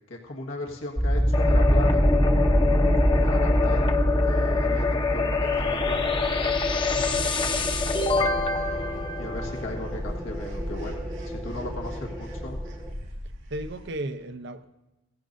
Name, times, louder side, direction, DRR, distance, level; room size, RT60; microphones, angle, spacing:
voice 1, 0.1-2.1 3.2-3.9 4.3-6.2 9.2-12.6, left 2 dB, 85° left, 0 dB, 1.6 m, -37 dB
sound 1, 1.0-12.9, equal, ahead, 0.9 m, -25 dB
sound 2, 1.3-10.0, left 4 dB, 25° left, 0.8 m, -27 dB
sound 3, 5.4-13.9, equal, 85° right, 4.2 m, -39 dB
voice 2, 6.9-7.3 13.5-14.7, right 1 dB, 60° right, 10 dB, 0.7 m, -35 dB
17.0 x 15.0 x 2.7 m, 1.0 s
head